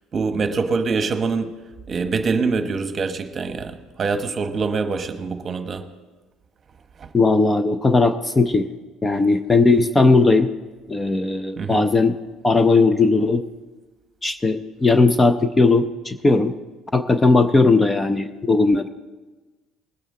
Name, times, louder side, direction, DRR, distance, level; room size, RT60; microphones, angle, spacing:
voice 1, 0.1-1.6 1.9-5.9 7.0-7.1 11.6-11.9, right 4 dB, 35° right, 1.1 m, -24 dB
voice 2, 7.1-8.7 9.0-10.5 10.9-12.2 12.4-13.4 14.2-16.5 16.9-18.9, left 3 dB, 15° left, 0.5 m, -17 dB
20.0 x 9.0 x 3.7 m
cardioid pair, 110°, 0 cm